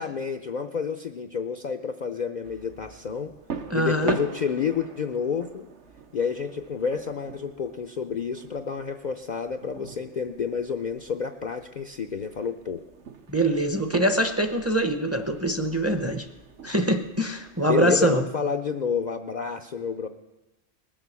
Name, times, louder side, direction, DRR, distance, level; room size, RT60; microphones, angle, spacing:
voice 1, 0.0-5.7 6.1-12.8 17.7-20.1, left 6 dB, 55° left, 6 dB, 0.5 m, -29 dB
sound 1, 2.4-18.3, right 6 dB, 70° right, 1.2 m, -42 dB
voice 2, 3.7-4.2 13.3-16.3 16.6-18.2, right 1 dB, 15° right, 7 dB, 0.6 m, -24 dB
20.0 x 7.5 x 6.9 m, 1.1 s
omnidirectional pair, 1.3 m